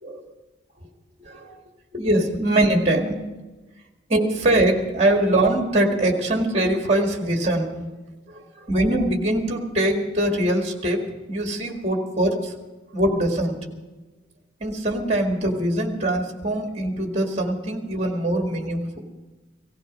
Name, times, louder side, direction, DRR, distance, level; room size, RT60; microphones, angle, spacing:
voice 1, 1.2-1.6 1.9-3.2 4.1-7.8 8.3-12.5 12.9-13.6 14.6-19.0, right 1 dB, 30° right, 2 dB, 2.0 m, -22 dB
17.5 x 15.5 x 5.3 m, 1.2 s
head